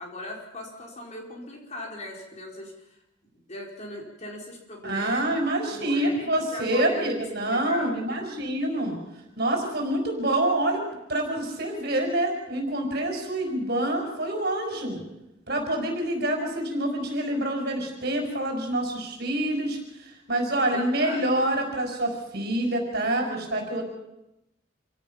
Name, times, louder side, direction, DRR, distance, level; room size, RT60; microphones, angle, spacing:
voice 1, 0.0-3.0 3.3-5.4 5.7-8.3 20.7-21.4, left 1 dB, 35° left, 0 dB, 4.6 m, -39 dB
voice 2, 4.8-9.0 9.4-10.8 11.1-15.0 15.5-23.8, right 1 dB, 55° right, 2 dB, 5.6 m, -27 dB
27.0 x 17.0 x 5.8 m, 0.89 s
head